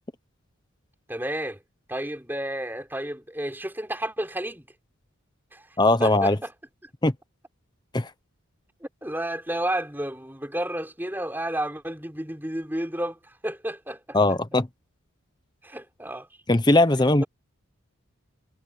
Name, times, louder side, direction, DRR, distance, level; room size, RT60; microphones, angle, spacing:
voice 1, 1.1-1.6 1.9-4.7 5.5-5.7 6.0-6.5 8.8-14.2 15.6-16.3, right 1 dB, 10° right, 3.9 m, -31 dB
voice 2, 5.8-6.4 7.0-7.1 7.9-8.1 14.1-14.7 16.5-17.2, left 2 dB, 20° left, 0.8 m, -19 dB
head